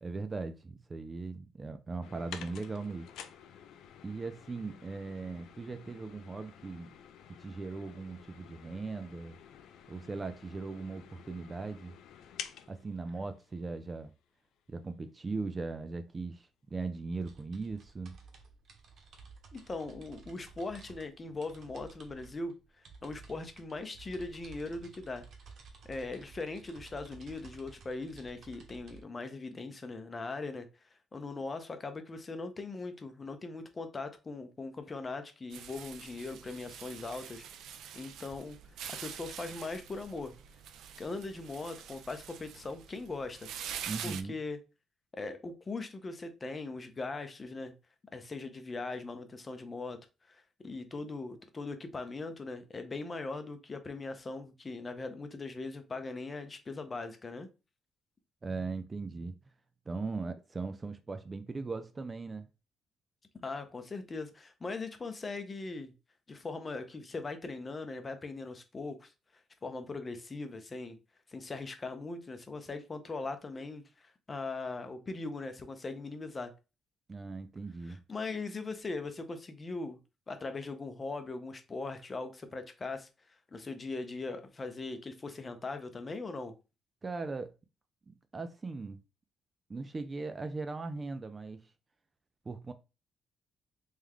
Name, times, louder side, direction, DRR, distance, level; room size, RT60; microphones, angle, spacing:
voice 1, 0.0-3.1 4.0-6.9 7.3-9.3 9.9-12.0 12.7-14.1 14.7-18.2 43.9-44.4 58.4-59.4 59.9-62.5 77.1-78.0 87.0-87.5 88.3-89.0 89.7-91.7 92.5-92.7, right 3 dB, 25° right, 0.4 m, -39 dB
sound 1, 2.0-14.2 14.5-14.6 15.5-15.6 15.8-15.9 16.5-16.6 16.9-17.1, left 9 dB, 80° left, 0.5 m, -51 dB
sound 2, 17.1-29.0, right 5 dB, 60° right, 1.0 m, -54 dB
voice 2, 19.5-22.5 23.0-25.2 25.8-30.7 31.1-37.4 37.9-38.6 38.9-40.3 41.0-43.5 44.0-44.6 45.1-47.7 48.1-50.0 50.3-57.5 63.3-65.9 66.3-69.1 69.6-71.0 71.3-76.5 77.9-80.0 80.3-83.1 83.5-86.5, left 3 dB, 25° left, 0.7 m, -40 dB
sound 3, 35.5-44.2, right 9 dB, 80° right, 0.4 m, -45 dB
3.4 x 3.2 x 3.7 m
cardioid pair, 120°, 0 cm